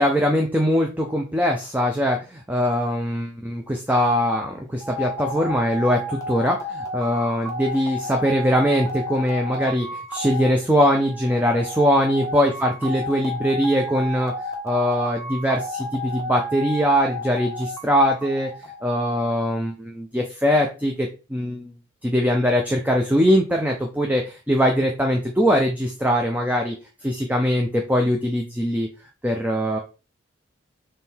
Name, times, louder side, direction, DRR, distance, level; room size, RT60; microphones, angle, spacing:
voice 1, 0.0-14.3 14.6-18.5 18.8-21.7 22.0-26.8 27.0-28.9 29.2-29.8, equal, 10° right, 2 dB, 0.5 m, -22 dB
sound 1, 4.8-19.3, equal, 15° left, 0.9 m, -32 dB
3.7 x 3.2 x 4.4 m, 0.31 s
head